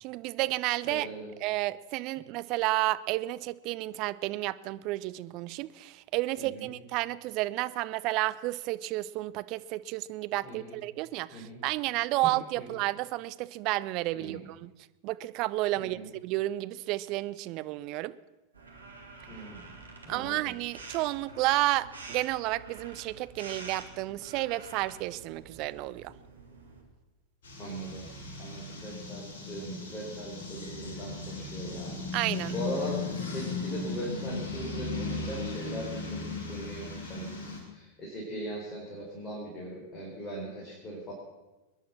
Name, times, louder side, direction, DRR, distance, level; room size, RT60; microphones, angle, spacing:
voice 1, 0.0-1.1 1.4-14.7 15.0-18.1 20.1-26.1 32.1-32.5, right 18 dB, 40° right, 16 dB, 0.6 m, -31 dB
voice 2, 0.8-1.3 6.4-6.7 10.4-10.8 11.3-11.6 12.6-12.7 14.1-14.4 15.8-16.1 19.3-19.7 20.0-20.5 27.6-28.1 28.3-36.2 36.5-41.1, right 1 dB, 20° left, -4 dB, 4.7 m, -40 dB
sound 1, 18.5-26.8, right 3 dB, 75° right, 2.8 m, -48 dB
sound 2, 27.4-37.6, left 3 dB, 55° left, 5.1 m, -37 dB
21.5 x 10.5 x 6.1 m, 1.1 s
figure-of-eight pair, 90°, 0 cm